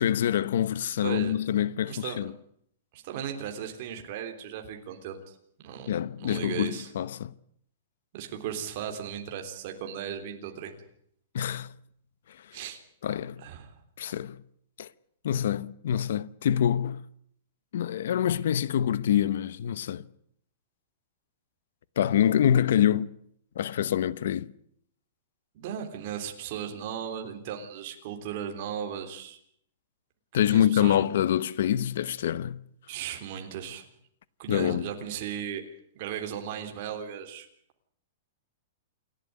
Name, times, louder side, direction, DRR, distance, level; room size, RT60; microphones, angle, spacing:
voice 1, 0.0-2.3 5.9-7.3 11.3-11.7 12.3-12.6 13.0-13.4 14.0-14.4 14.8-14.9 15.2-17.0 17.7-20.0 22.0-23.2 23.6-24.5 30.3-32.6 34.5-34.9, left 10 dB, 60° left, 0.8 m, -26 dB
voice 2, 1.0-1.4 1.9-2.2 2.9-5.4 5.6-6.9 8.1-10.8 12.5-12.8 13.4-13.7 25.6-29.4 30.5-31.0 32.9-33.9 34.4-35.6 36.0-37.5, right 9 dB, 35° right, 3.5 m, -36 dB
28.5 x 12.0 x 9.5 m
supercardioid pair, 175°, 0 cm